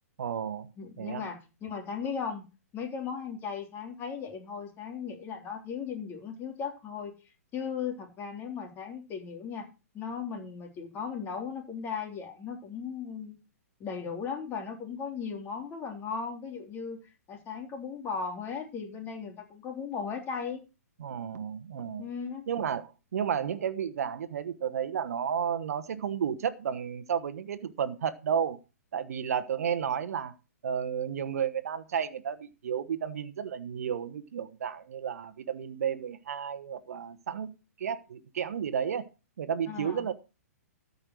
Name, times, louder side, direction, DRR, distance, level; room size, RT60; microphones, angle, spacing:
voice 1, 0.2-0.7 1.0-1.2 21.0-22.1 22.5-28.6 28.9-30.3 30.6-37.5 37.8-39.1 39.4-40.1, right 8 dB, 65° right, 1.2 m, -32 dB
voice 2, 0.8-2.4 2.7-7.1 7.5-9.6 9.9-13.4 13.8-17.0 17.3-20.6 22.0-22.5 39.7-40.0, left 6 dB, 25° left, 3.5 m, -37 dB
13.5 x 5.6 x 6.3 m
hypercardioid pair, 125°, 9 cm